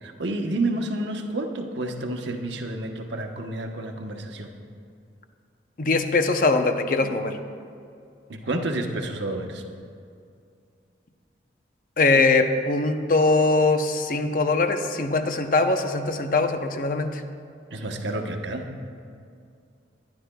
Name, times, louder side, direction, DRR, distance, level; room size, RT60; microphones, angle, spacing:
voice 1, 0.0-4.5 8.3-9.6 17.7-18.7, right 2 dB, 75° right, 3 dB, 1.0 m, -30 dB
voice 2, 5.8-7.4 12.0-17.2, left 3 dB, 45° left, 7 dB, 0.6 m, -22 dB
21.5 x 10.5 x 2.3 m, 2.4 s
head